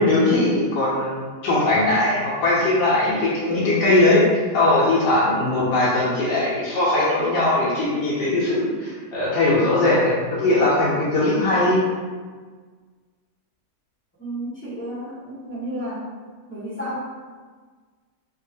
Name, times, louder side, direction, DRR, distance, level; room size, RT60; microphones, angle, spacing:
voice 1, 0.0-11.8, left 2 dB, 90° left, -8 dB, 1.3 m, -20 dB
voice 2, 14.2-16.1 16.5-17.1, equal, 10° left, -11 dB, 0.6 m, -32 dB
2.9 x 2.8 x 2.6 m, 1.5 s
omnidirectional pair, 1.7 m